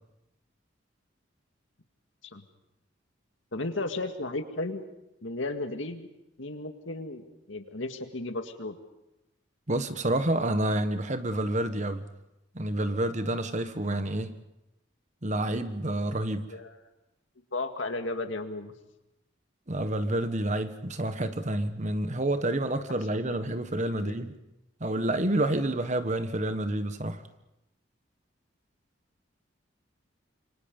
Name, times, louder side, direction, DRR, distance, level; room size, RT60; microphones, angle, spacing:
voice 1, 3.5-4.8 5.2-6.1 6.4-8.8 16.5-16.8 17.5-18.7 23.3-23.5 24.0-24.2, left 2 dB, 75° left, 2.0 m, -34 dB
voice 2, 9.7-12.0 12.5-14.3 15.2-16.5 19.7-24.3 24.8-27.2, right 1 dB, 40° right, 1.3 m, -29 dB
27.0 x 24.0 x 5.4 m
head